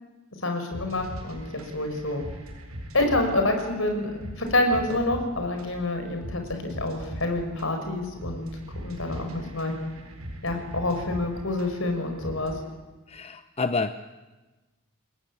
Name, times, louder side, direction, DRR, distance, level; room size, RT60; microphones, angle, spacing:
voice 1, 0.4-1.4 1.7-2.2 2.9-4.1 4.4-8.5 8.8-9.7 10.4-12.7, left 2 dB, 65° left, 5 dB, 5.5 m, -27 dB
sound 1, 0.7-12.7, equal, 90° right, 7.8 m, -40 dB
voice 2, 13.1-14.1, left 4 dB, 30° left, 9 dB, 0.8 m, -29 dB
28.0 x 21.5 x 8.7 m, 1.2 s
head